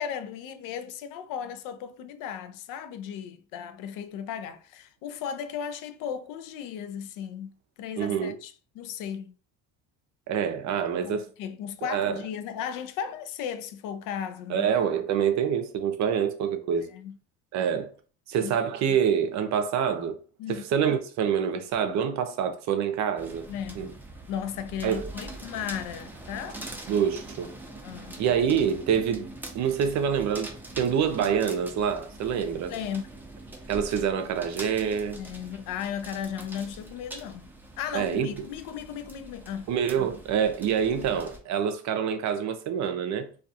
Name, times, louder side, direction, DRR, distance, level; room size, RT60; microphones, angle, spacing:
voice 1, 0.0-7.5 7.8-9.3 11.0-14.7 16.9-17.2 18.4-18.5 20.4-20.7 23.5-23.9 24.3-26.6 27.8-28.2 32.7-33.1 35.1-37.5 37.8-39.7, left 8 dB, 65° left, 0.5 m, -35 dB
voice 2, 8.0-8.3 10.3-11.3 11.8-12.2 14.5-16.9 17.5-17.9 18.3-20.2 20.5-23.5 23.8-23.9 24.8-25.1 26.9-27.5 28.2-29.3 29.5-32.7 33.7-35.2 37.9-38.3 39.7-43.3, right 8 dB, 55° right, 0.6 m, -26 dB
sound 1, 23.2-41.4, right 2 dB, 5° right, 0.6 m, -43 dB
2.4 x 2.3 x 2.7 m
supercardioid pair, 95°, 35 cm